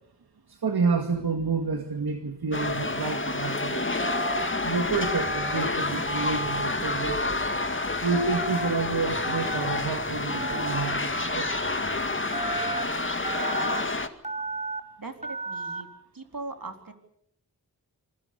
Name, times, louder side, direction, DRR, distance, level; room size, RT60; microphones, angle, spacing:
voice 1, 0.5-3.9 4.6-7.4 8.0-11.5, right 4 dB, 80° right, 5 dB, 2.1 m, -29 dB
sound 1, 2.5-14.1, left 2 dB, 30° left, 2.2 m, -29 dB
Telephone, 4.0-4.5 5.0-5.6 6.1-6.7 7.1-7.7 8.1-8.7 9.2-9.8 10.3-10.8 11.3-11.8 12.3-12.8 13.2-13.8 14.2-14.8 15.2-15.8, right 2 dB, 20° right, 3.6 m, -33 dB
sound 2, 4.6-12.9, left 3 dB, 60° left, 4.8 m, -47 dB
voice 2, 15.0-15.9 16.1-16.9, right 3 dB, 65° right, 5 dB, 3.9 m, -39 dB
27.0 x 22.5 x 7.0 m, 0.74 s
cardioid pair, 45°, 37 cm